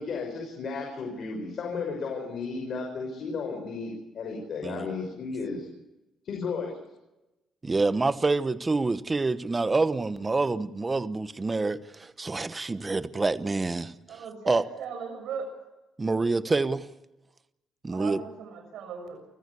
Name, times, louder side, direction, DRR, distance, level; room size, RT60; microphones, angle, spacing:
voice 1, 0.0-5.7 6.2-6.8, left 4 dB, 60° left, 5.9 m, -34 dB
voice 2, 7.6-14.6 16.0-16.9 17.8-18.2, right 3 dB, 25° right, 1.1 m, -27 dB
voice 3, 14.1-15.5 17.9-19.2, right 6 dB, 80° right, 6.9 m, -38 dB
29.5 x 14.5 x 8.5 m
cardioid pair, 90°, 0 cm